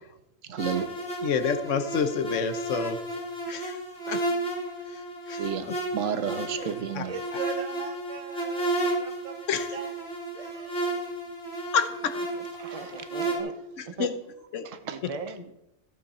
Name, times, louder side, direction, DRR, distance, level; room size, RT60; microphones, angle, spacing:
voice 1, 0.5-0.9 5.4-7.1 12.6-12.8 14.9-15.0, right 7 dB, 65° right, 11 dB, 1.2 m, -31 dB
sound 1, 0.6-13.4, right 2 dB, 45° left, 3.0 m, -32 dB
voice 2, 1.2-3.0 3.5-3.8 4.1-4.2 4.9-5.0 5.3-5.4 5.7-5.8 6.9-7.0 9.5-9.7 11.7-12.2 13.8-14.1 14.5-14.7 15.0-15.1, left 6 dB, 65° left, 11 dB, 1.2 m, -28 dB
voice 3, 6.6-9.9 10.3-11.0 12.4-12.5 12.7-13.5 13.9-14.1 14.8-15.5, right 6 dB, 30° right, 8 dB, 0.9 m, -39 dB
15.0 x 8.6 x 4.2 m, 0.88 s
omnidirectional pair, 1.5 m